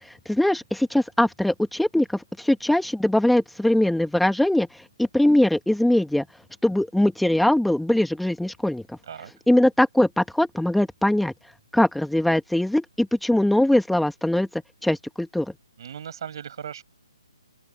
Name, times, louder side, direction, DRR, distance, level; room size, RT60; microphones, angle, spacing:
voice 1, 0.0-6.2 6.6-9.0 9.5-11.3 11.7-14.5 14.8-15.5, left 1 dB, ahead, 1.2 m, -21 dB
voice 2, 15.8-16.8, right 8 dB, 50° right, 5.7 m, -37 dB
open air
hypercardioid pair, 155°, 3 cm